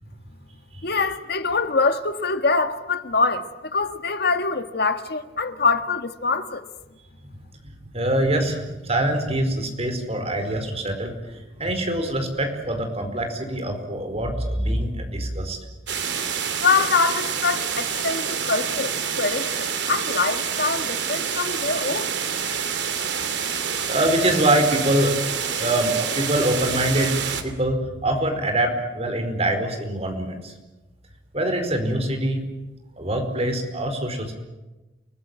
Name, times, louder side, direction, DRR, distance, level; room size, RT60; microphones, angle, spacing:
voice 1, 0.8-6.6 16.6-22.1, left 4 dB, 60° left, 1.8 m, -24 dB
voice 2, 7.6-15.6 23.9-25.2 25.6-30.5 31.3-32.4 33.0-34.3, right 1 dB, 35° right, 4.8 m, -24 dB
sound 1, 15.9-27.4, right 7 dB, 70° right, 2.9 m, -27 dB
30.0 x 20.0 x 9.1 m
head